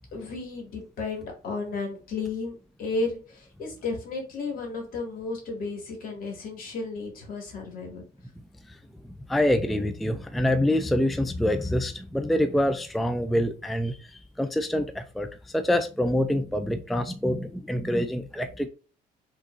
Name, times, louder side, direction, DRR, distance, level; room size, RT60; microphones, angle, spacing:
voice 1, 0.1-8.0, left 3 dB, 60° left, 2 dB, 2.4 m, -33 dB
voice 2, 9.3-15.3 15.5-18.7, left 1 dB, ahead, 9 dB, 0.4 m, -26 dB
5.4 x 3.6 x 2.6 m, 0.36 s
cardioid pair, 110°, 17 cm